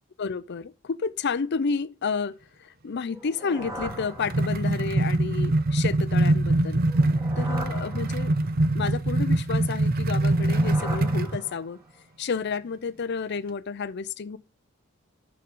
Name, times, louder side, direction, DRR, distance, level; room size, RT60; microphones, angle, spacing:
voice 1, 0.2-6.8 7.4-8.3 8.7-11.8 12.2-14.4, left 5 dB, 55° left, 0.5 m, -31 dB
sound 1, 3.1-4.9 6.8-8.7 10.1-12.0, right 1 dB, 15° right, 1.7 m, -40 dB
sound 2, 3.8-11.4, right 2 dB, 45° right, 0.6 m, -24 dB
6.8 x 6.3 x 5.4 m
head